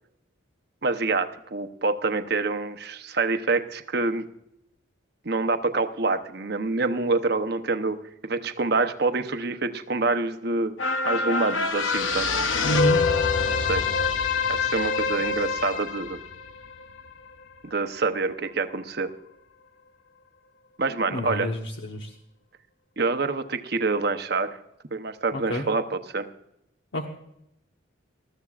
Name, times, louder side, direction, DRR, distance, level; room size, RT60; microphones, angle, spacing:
voice 1, 0.8-4.3 5.2-8.0 8.2-10.7 11.1-12.3 13.5-13.9 14.5-16.2 17.6-19.1 20.8-21.5 23.0-24.6 24.9-26.3, right 3 dB, 55° right, 8 dB, 0.8 m, -26 dB
sound 1, 10.8-17.4 17.9-18.0, left 4 dB, 80° left, 0.8 m, -25 dB
voice 2, 12.6-13.0 21.1-22.1 25.3-25.6 26.9-27.1, right 1 dB, 65° left, 2 dB, 1.1 m, -28 dB
19.5 x 13.5 x 2.4 m, 0.82 s
head